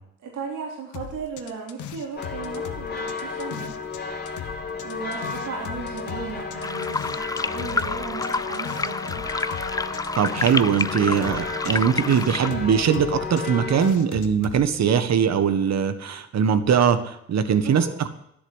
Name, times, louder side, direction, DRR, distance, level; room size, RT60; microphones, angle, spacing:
voice 1, 0.2-3.7 4.8-9.2 17.6-17.9, right 5 dB, 80° right, -1 dB, 3.8 m, -36 dB
sound 1, 0.9-4.0 4.3-10.9 11.1-14.6, left 10 dB, 80° left, 1.2 m, -39 dB
sound 2, 2.2-13.9, left 4 dB, 30° left, 3.3 m, -33 dB
sound 3, 6.6-12.5, left 3 dB, 10° left, 0.4 m, -29 dB
voice 2, 10.2-18.1, right 7 dB, 60° right, 11 dB, 1.6 m, -21 dB
11.5 x 10.5 x 8.1 m, 0.75 s
cardioid pair, 90°, 30 cm